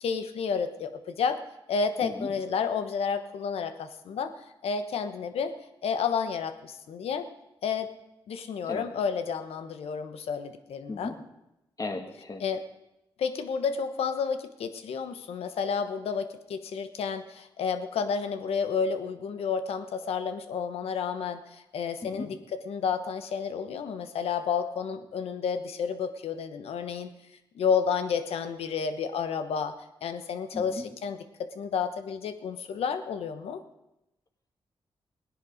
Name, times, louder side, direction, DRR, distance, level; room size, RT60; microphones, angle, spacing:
voice 1, 0.0-1.4 1.7-4.3 4.6-5.5 5.8-7.3 7.6-7.9 8.3-11.1 12.4-12.6 13.2-27.1 27.5-29.7 30.0-33.6, left 6 dB, 90° left, 9 dB, 1.1 m, -31 dB
voice 2, 11.8-12.4 22.0-22.3 30.5-30.8, left 3 dB, 40° left, 4 dB, 2.1 m, -36 dB
18.0 x 10.5 x 5.1 m, 0.92 s
cardioid pair, 70°, 10 cm